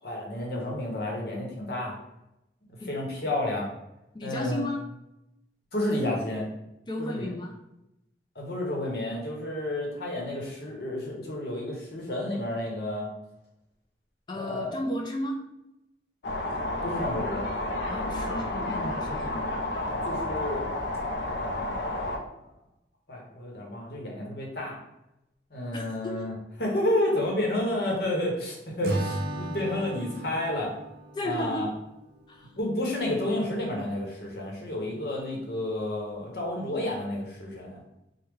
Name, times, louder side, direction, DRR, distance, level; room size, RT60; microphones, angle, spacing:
voice 1, 0.0-2.0 2.9-3.7 4.2-4.7 5.7-6.5 7.0-7.3 8.3-13.1 14.3-14.8 16.8-17.4 20.0-20.7 21.3-22.0 23.1-24.8 25.5-26.3 26.6-30.7 31.2-31.7 32.6-37.8, left 1 dB, 65° left, -1 dB, 0.9 m, -30 dB
voice 2, 4.1-4.8 6.9-7.5 14.3-15.4 17.9-19.3 25.7-26.2 31.1-31.7 32.3-32.5, equal, 25° left, 1 dB, 0.3 m, -34 dB
sound 1, 16.2-22.2, left 1 dB, 85° left, 0.5 m, -31 dB
Acoustic guitar / Strum, 28.8-32.1, right 1 dB, 65° right, 0.7 m, -34 dB
3.4 x 2.1 x 3.1 m, 0.88 s
head